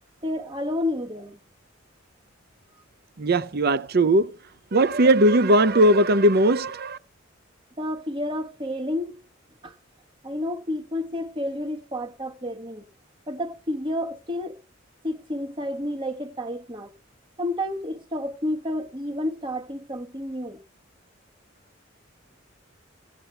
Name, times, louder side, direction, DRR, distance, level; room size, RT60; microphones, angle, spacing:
voice 1, 0.2-1.4 7.8-9.2 9.6-9.7 10.2-12.8 13.3-14.6 15.0-16.9 17.4-20.6, left 1 dB, 25° right, 1.4 m, -30 dB
voice 2, 3.2-4.4 4.7-7.0, right 1 dB, 50° right, 0.7 m, -19 dB
17.0 x 8.2 x 4.5 m
head